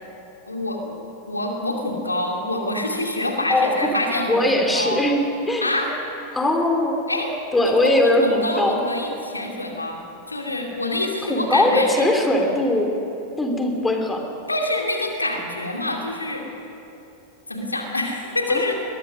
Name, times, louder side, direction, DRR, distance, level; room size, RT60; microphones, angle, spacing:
voice 1, 0.5-1.0 1.3-5.1 5.6-5.9 7.1-7.4 7.6-10.0 10.3-12.1 14.5-16.5 17.5-18.8, left 2 dB, 80° left, 2 dB, 2.6 m, -26 dB
voice 2, 4.3-5.7 6.3-7.0 7.5-8.8 11.3-12.9 13.4-14.2 18.5-18.6, left 1 dB, 10° left, 3 dB, 3.0 m, -20 dB
22.0 x 21.0 x 6.3 m, 2.9 s
figure-of-eight pair, 90°, 0 cm